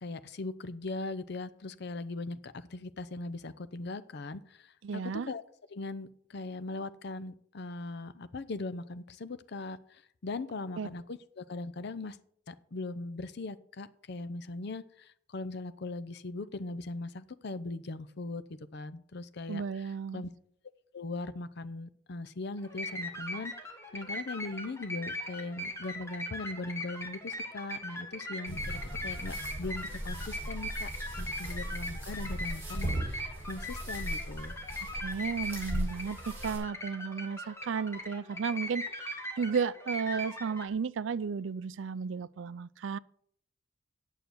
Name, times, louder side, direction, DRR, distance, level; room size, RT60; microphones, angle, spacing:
voice 1, 0.0-5.4 5.7-12.2 12.5-18.4 18.7-20.3 20.9-23.5 23.9-30.9 31.2-34.5, left 2 dB, 60° left, 0.6 m, -40 dB
voice 2, 4.8-5.3 10.8-10.9 19.5-20.2 34.8-43.0, right 5 dB, 75° right, 0.4 m, -34 dB
sound 1, 22.6-40.7, left 1 dB, 15° left, 1.6 m, -40 dB
sound 2, 28.5-36.6, right 1 dB, 10° right, 5.3 m, -38 dB
9.1 x 6.7 x 7.9 m
head